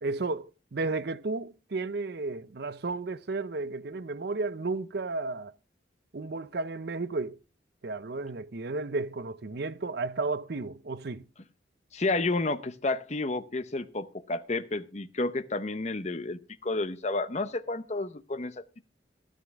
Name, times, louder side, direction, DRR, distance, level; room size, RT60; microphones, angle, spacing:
voice 1, 0.0-5.5 6.1-7.4 7.8-11.3, right 3 dB, 55° right, 0.6 m, -33 dB
voice 2, 11.9-18.8, left 2 dB, 35° left, 0.8 m, -31 dB
13.5 x 12.5 x 3.5 m
head